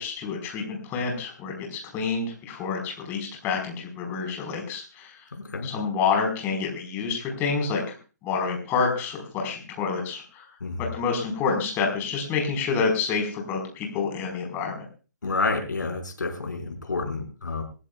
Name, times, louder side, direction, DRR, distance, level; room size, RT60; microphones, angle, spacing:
voice 1, 0.0-5.2 5.6-7.8 8.2-10.5 10.8-14.8, left 5 dB, 20° left, 1 dB, 4.7 m, -28 dB
voice 2, 5.3-5.7 10.6-10.9 15.2-17.6, left 3 dB, 85° left, 3 dB, 5.4 m, -29 dB
25.0 x 15.0 x 2.4 m, 0.36 s
hypercardioid pair, 145°, 10 cm